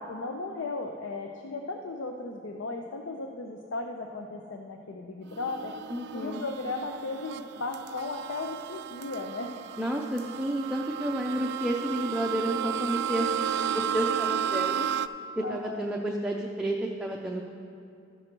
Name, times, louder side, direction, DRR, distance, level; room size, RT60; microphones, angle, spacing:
voice 1, 0.0-5.7 6.1-9.5 15.4-15.8, left 3 dB, 80° left, 3 dB, 0.6 m, -36 dB
sound 1, 5.3-15.1, right 9 dB, 60° right, 0.3 m, -33 dB
voice 2, 5.9-6.4 9.8-14.9 15.4-17.5, right 1 dB, 5° right, -1 dB, 0.5 m, -31 dB
14.0 x 6.4 x 4.5 m, 2.6 s
head